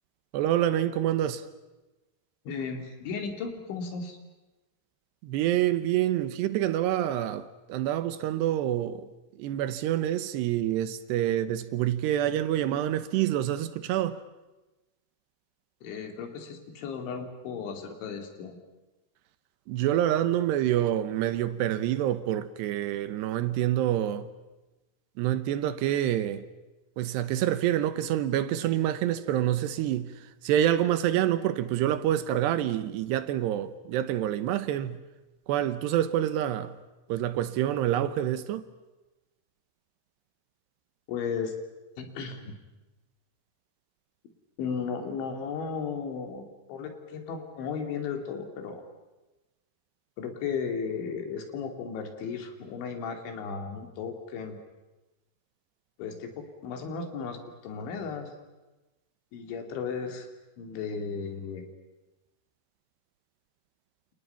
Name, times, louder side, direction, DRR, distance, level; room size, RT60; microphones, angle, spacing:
voice 1, 0.3-1.4 5.2-9.1 9.4-14.2 19.7-24.3 25.2-26.4 27.0-30.1 30.4-35.0 35.5-36.7 37.1-38.7, right 12 dB, 75° right, 3.0 m, -27 dB
voice 2, 2.5-4.2 15.8-18.6 41.1-41.5 42.0-42.5 44.6-48.8 50.2-54.6 56.0-58.3 59.3-60.3 60.6-61.6, left 5 dB, 85° left, 5.1 m, -35 dB
29.5 x 28.0 x 5.8 m
omnidirectional pair, 5.2 m